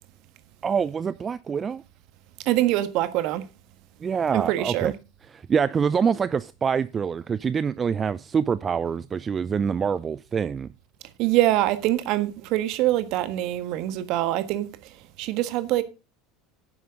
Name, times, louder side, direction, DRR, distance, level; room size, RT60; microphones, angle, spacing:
voice 1, 0.6-1.8 4.0-4.9 5.3-10.7, right 6 dB, 30° right, 0.5 m, -25 dB
voice 2, 2.4-3.4 4.3-4.9 11.2-15.8, right 15 dB, 55° right, 1.5 m, -24 dB
11.0 x 9.5 x 3.7 m
figure-of-eight pair, 70°, 0 cm